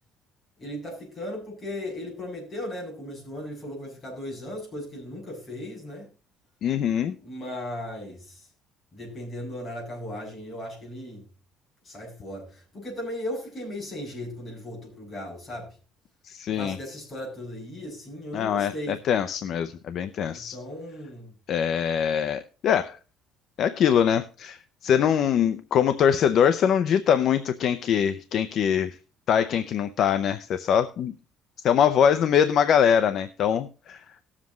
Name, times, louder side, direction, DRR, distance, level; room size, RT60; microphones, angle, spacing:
voice 1, 0.6-6.1 7.2-8.5 8.9-11.2 11.8-15.7 16.5-19.0 20.3-21.3, left 1 dB, 25° left, -2 dB, 7.1 m, -37 dB
voice 2, 6.6-7.2 16.3-16.8 18.3-20.6 21.5-23.0 23.6-24.6 24.8-28.9 29.3-31.1 31.6-34.0, left 8 dB, 50° left, 11 dB, 0.5 m, -23 dB
19.0 x 7.4 x 3.1 m, 0.34 s
cardioid pair, 160°, 0 cm